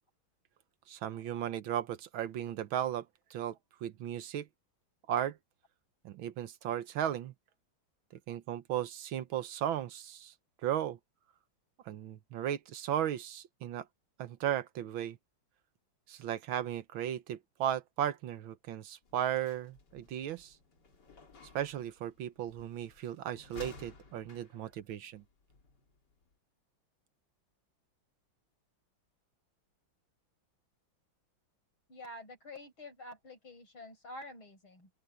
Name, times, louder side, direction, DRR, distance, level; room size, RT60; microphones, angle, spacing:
voice 1, 0.9-4.5 5.1-5.4 6.0-7.3 8.3-10.3 10.6-11.0 11.9-13.8 14.2-15.2 16.1-20.5 21.5-25.2, right 10 dB, 80° right, 1.7 m, -36 dB
sound 1, 19.0-26.3, left 4 dB, 55° left, 3.2 m, -55 dB
voice 2, 31.9-34.9, left 1 dB, 85° left, 7.5 m, -48 dB
open air
omnidirectional pair, 2.2 m